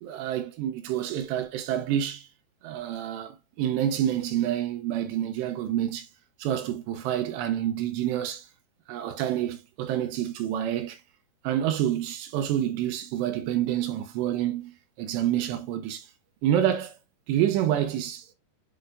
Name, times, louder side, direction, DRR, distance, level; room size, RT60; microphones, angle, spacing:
voice 1, 0.0-2.3 2.6-6.1 6.4-8.5 8.9-11.0 11.4-16.1 16.4-16.9 17.3-18.3, right 11 dB, 80° right, 2.8 m, -28 dB
8.7 x 4.4 x 2.5 m
omnidirectional pair, 5.1 m